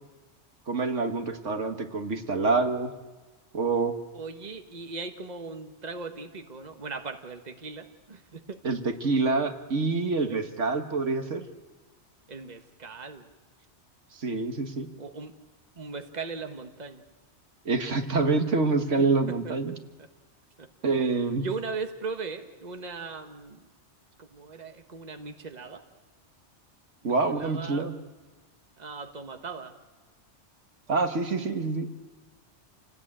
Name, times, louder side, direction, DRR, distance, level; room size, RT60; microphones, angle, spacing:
voice 1, 0.7-2.9 3.5-4.0 8.6-11.5 14.2-14.9 17.7-19.7 20.8-21.4 27.0-27.9 30.9-31.9, right 3 dB, 85° right, 6 dB, 1.9 m, -26 dB
voice 2, 4.1-8.6 10.1-10.4 12.3-13.3 15.0-15.3 15.8-17.0 19.0-19.1 19.4-19.5 20.6-20.7 21.4-23.7 24.2-25.8 27.0-27.9 28.8-29.7, right 4 dB, 35° right, 7 dB, 1.5 m, -38 dB
28.5 x 18.5 x 8.9 m, 1.3 s
omnidirectional pair, 1.2 m